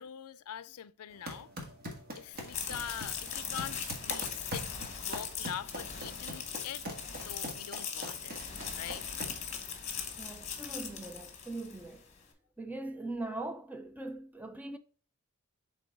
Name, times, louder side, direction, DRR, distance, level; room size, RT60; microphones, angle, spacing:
voice 1, 0.0-1.5 2.1-6.8 7.1-8.4 8.8-9.1, left 9 dB, 80° left, 0.4 m, -43 dB
sound 1, 1.1-9.5, equal, 45° right, 1.6 m, -43 dB
sound 2, 2.3-11.9, left 7 dB, 30° left, 1.1 m, -40 dB
voice 2, 10.2-12.1 12.6-14.8, right 2 dB, 5° right, 0.4 m, -41 dB
7.8 x 3.6 x 3.5 m
head